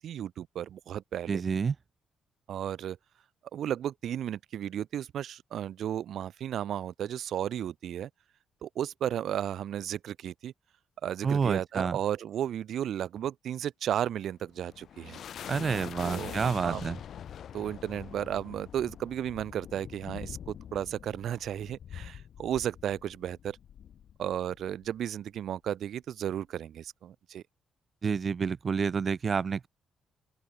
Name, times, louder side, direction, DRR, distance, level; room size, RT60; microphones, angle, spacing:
voice 1, 0.0-1.4 2.5-3.0 3.5-8.1 8.6-10.5 11.0-15.2 16.0-16.8 17.5-23.6 24.2-27.4, right 10 dB, 65° right, 1.9 m, -34 dB
voice 2, 1.3-1.7 11.2-12.0 15.5-17.0 28.0-29.7, right 6 dB, 35° right, 1.2 m, -29 dB
sound 1, 14.2-25.0, left 9 dB, 55° left, 3.8 m, -44 dB
open air
cardioid pair, 150°, 0 cm